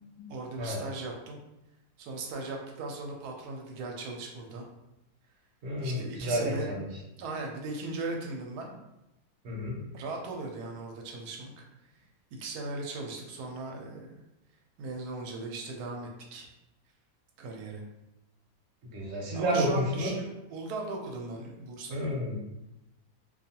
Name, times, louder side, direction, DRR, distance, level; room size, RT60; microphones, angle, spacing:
voice 1, 0.3-1.4 2.0-4.6 5.8-6.7 7.2-8.7 9.9-11.6 12.4-14.2 14.8-16.5 17.4-17.8 19.3-22.1, right 3 dB, 85° right, 1 dB, 1.1 m, -38 dB
voice 2, 5.6-6.8 9.4-9.8 18.9-20.1 21.9-22.4, equal, 55° right, -2 dB, 0.8 m, -30 dB
2.6 x 2.3 x 2.7 m, 0.91 s
omnidirectional pair, 1.6 m